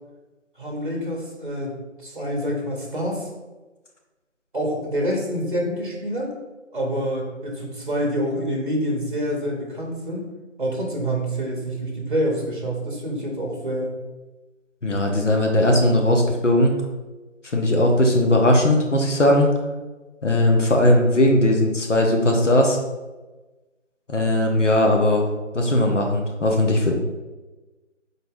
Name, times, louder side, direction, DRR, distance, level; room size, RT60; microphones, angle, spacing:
voice 1, 0.6-3.3 4.5-6.3 6.7-10.3 10.6-14.0, equal, 40° right, -1 dB, 0.8 m, -27 dB
voice 2, 14.8-16.8 17.4-19.5 20.2-22.8 24.1-25.3 25.5-27.0, left 1 dB, 70° left, 2 dB, 0.9 m, -18 dB
3.9 x 2.7 x 3.6 m, 1.2 s
figure-of-eight pair, 165°, 38 cm